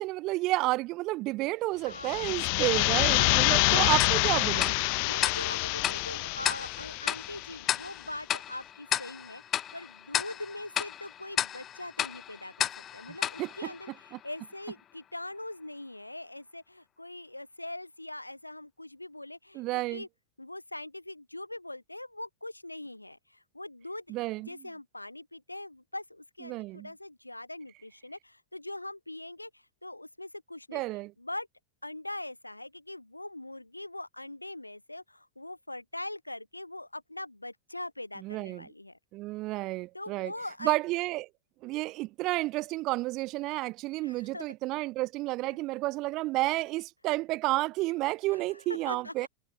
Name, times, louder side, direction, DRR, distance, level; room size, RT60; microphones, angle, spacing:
voice 1, 0.0-4.7 13.4-13.7 14.1-14.2 19.5-20.0 24.1-24.7 26.4-26.9 30.7-31.1 38.2-38.7 39.1-40.3 40.6-41.3 41.6-49.3, right 20 dB, 40° right, 2.3 m, -31 dB
voice 2, 1.9-2.5 3.1-3.6 5.1-9.4 9.7-20.1 20.4-24.1 24.5-29.5 29.8-30.8 31.2-31.5 31.8-39.0 39.9-40.7 44.0-44.5 48.3-48.4 48.9-49.3, left 1 dB, 85° left, 6.0 m, -42 dB
sound 1, 1.9-7.6, left 37 dB, 45° left, 5.0 m, -27 dB
Tick-tock, 4.0-14.4, left 10 dB, 30° left, 2.1 m, -34 dB
figure-of-eight pair, 90°, 0 cm